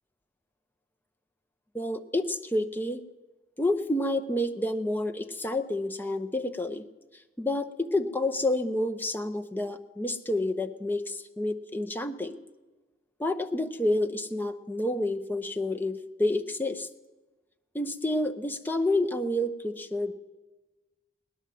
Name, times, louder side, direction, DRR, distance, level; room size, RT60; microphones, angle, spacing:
voice 1, 1.7-3.0 3.6-6.9 7.4-12.4 13.2-16.9 17.7-20.1, left 1 dB, 10° left, 8 dB, 0.7 m, -29 dB
18.0 x 10.5 x 7.6 m, 1.2 s
head